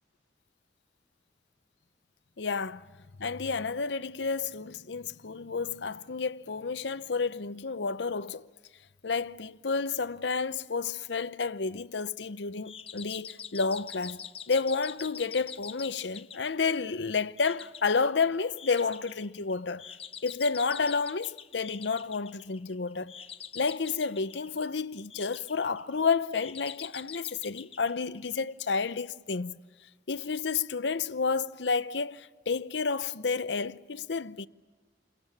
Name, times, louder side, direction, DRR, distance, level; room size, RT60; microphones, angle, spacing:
voice 1, 2.4-2.9 3.2-8.5 9.0-19.8 20.2-23.1 23.5-29.6 30.1-34.5, left 4 dB, 75° left, 0.7 m, -30 dB
sound 1, 12.6-28.7, left 8 dB, 30° left, 0.8 m, -45 dB
29.0 x 23.0 x 7.3 m
head